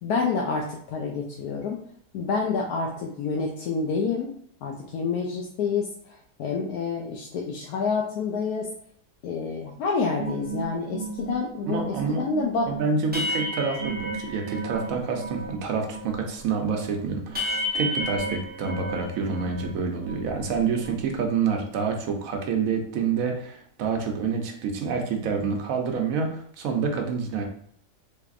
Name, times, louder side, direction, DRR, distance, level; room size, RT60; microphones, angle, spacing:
voice 1, 0.0-1.8 2.1-4.3 4.6-8.7 9.2-12.7, left 4 dB, 75° left, -1 dB, 1.0 m, -28 dB
sound 1, 10.1-15.6 15.8-19.7 20.0-21.2, right 1 dB, 10° right, 0.4 m, -33 dB
voice 2, 11.7-12.2 12.7-27.4, right 5 dB, 65° right, 3 dB, 1.0 m, -27 dB
3.4 x 3.2 x 2.4 m, 0.66 s
omnidirectional pair, 1.7 m